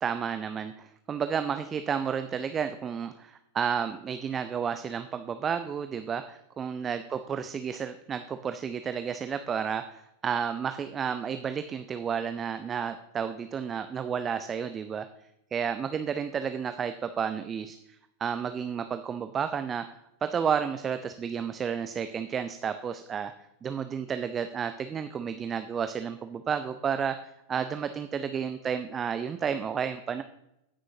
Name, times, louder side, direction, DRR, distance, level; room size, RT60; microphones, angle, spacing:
voice 1, 0.0-15.1 15.5-17.8 18.2-19.8 20.2-23.3 23.6-27.2 27.5-30.2, right 7 dB, 25° right, 9 dB, 0.4 m, -31 dB
15.5 x 6.2 x 2.7 m, 0.85 s
figure-of-eight pair, 90°, 0 cm